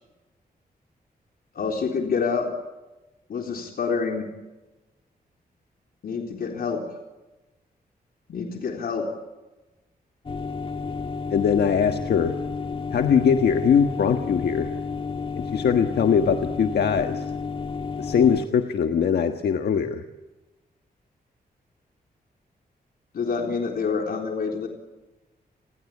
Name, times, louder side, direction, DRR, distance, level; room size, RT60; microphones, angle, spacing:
voice 1, 1.5-2.5 3.3-4.3 6.0-6.8 8.3-9.1 23.1-24.7, left 5 dB, 70° left, 2 dB, 3.9 m, -27 dB
sound 1, 10.3-18.5, left 5 dB, 35° left, 1.6 m, -31 dB
voice 2, 11.3-12.3 12.9-14.7 15.4-17.2 18.0-20.0, left 7 dB, 90° left, 6 dB, 1.5 m, -21 dB
30.0 x 21.0 x 8.6 m, 1.1 s
wide cardioid pair, 155°, 16 cm